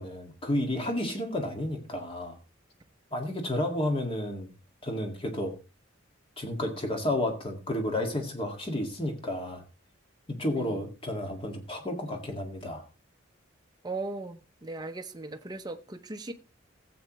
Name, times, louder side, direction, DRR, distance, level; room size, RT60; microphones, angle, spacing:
voice 1, 0.0-2.4 3.1-4.5 4.8-5.5 6.4-9.6 10.3-12.9, left 1 dB, 30° left, 3 dB, 1.8 m, -31 dB
voice 2, 10.5-10.8 13.8-16.3, right 2 dB, 20° right, 6 dB, 0.8 m, -38 dB
16.0 x 7.9 x 3.0 m, 0.32 s
head